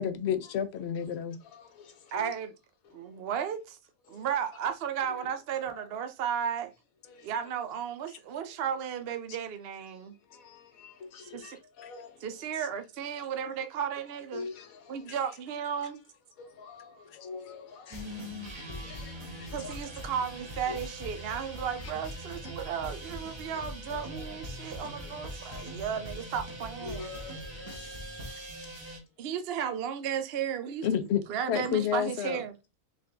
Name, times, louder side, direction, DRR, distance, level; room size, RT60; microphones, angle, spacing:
voice 1, 0.0-1.4 11.8-11.9 17.9-18.0 30.8-31.2 31.5-32.4, left 9 dB, 65° left, 0.7 m, -30 dB
voice 2, 1.4-2.3 2.9-3.2 4.1-4.2 5.2-5.3 5.7-5.9 7.0-7.3 10.3-12.2 14.3-15.1 16.4-19.8 20.7-20.8 22.4-22.5 23.5-23.6 23.9-24.4 24.8-25.2 25.4-25.8 26.8-28.1, left 4 dB, 80° left, 1.3 m, -46 dB
voice 3, 2.1-2.5 2.9-3.8 4.1-6.7 7.2-10.1 11.2-11.6 12.2-14.5 14.9-16.0 17.0-17.1 19.5-27.1 29.2-32.5, right 8 dB, 60° right, 0.6 m, -34 dB
sound 1, 17.9-29.0, equal, 20° right, 1.0 m, -41 dB
3.7 x 3.5 x 3.3 m
omnidirectional pair, 1.5 m